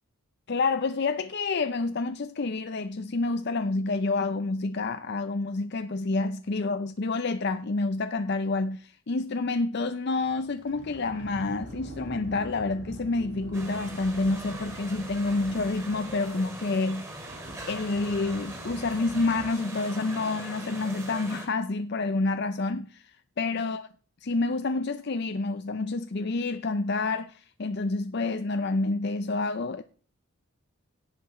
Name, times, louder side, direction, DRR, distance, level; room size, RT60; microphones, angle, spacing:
voice 1, 0.5-17.1 17.7-23.9 24.2-29.8, left 3 dB, 50° left, 0.5 m, -28 dB
Sliding door, 10.3-19.5, right 1 dB, 55° right, 6.3 m, -46 dB
sound 1, 13.5-21.5, right 2 dB, 15° right, 2.3 m, -41 dB
17.0 x 5.8 x 4.3 m
head